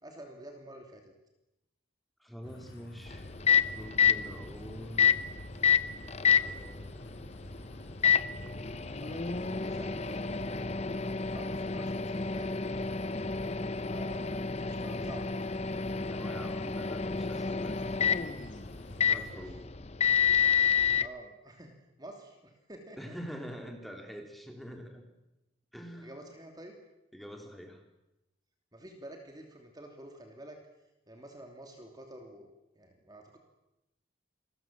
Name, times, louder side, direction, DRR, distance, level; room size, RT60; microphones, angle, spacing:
voice 1, 0.0-1.1 9.0-10.7 11.3-12.6 12.9-13.2 13.8-15.5 19.0-19.6 21.0-23.1 26.0-26.7 28.7-30.6 31.1-33.4, right 1 dB, 20° right, 3 dB, 3.0 m, -49 dB
voice 2, 2.2-3.3 3.8-5.1 6.2-7.1 16.1-17.8 19.1-19.6 23.0-25.1 25.7-26.1 27.1-27.8, equal, ahead, 3 dB, 3.5 m, -45 dB
sound 1, 2.4-19.4, equal, 70° left, 5.4 m, -50 dB
Microwave oven, 3.1-21.1, left 7 dB, 30° left, 0.8 m, -29 dB
28.5 x 21.5 x 7.6 m, 0.94 s
head